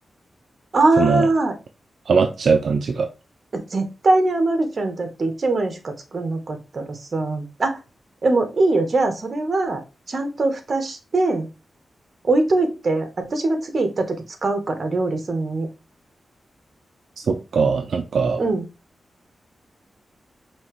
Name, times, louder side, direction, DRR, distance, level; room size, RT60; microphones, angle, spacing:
voice 1, 0.7-1.5 3.5-7.8 8.2-9.8 10.1-11.5 12.2-15.7 18.4-18.7, right 2 dB, 50° right, 6 dB, 1.0 m, -22 dB
voice 2, 2.1-3.1 17.3-18.4, right 5 dB, 75° right, 5 dB, 0.4 m, -20 dB
5.5 x 2.9 x 3.1 m, 0.28 s
wide cardioid pair, 95°, 0 cm